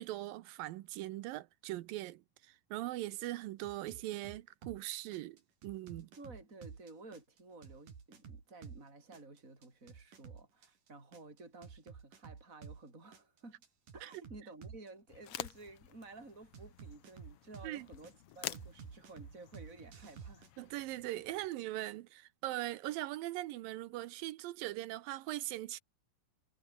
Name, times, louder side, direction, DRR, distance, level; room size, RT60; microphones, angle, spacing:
voice 1, 0.0-6.1 14.0-14.1 17.6-17.9 20.6-25.8, right 16 dB, 80° right, 2.5 m, -41 dB
sound 1, 3.6-4.8 5.1-8.8 9.1-12.8 13.1-14.9 16.5-18.1 18.5-20.5, right 6 dB, 65° right, 5.3 m, -51 dB
voice 2, 6.2-13.6 13.9-20.5, right 3 dB, 20° right, 6.5 m, -53 dB
sound 2, 15.1-21.5, left 12 dB, 85° left, 1.2 m, -49 dB
omnidirectional pair, 4.1 m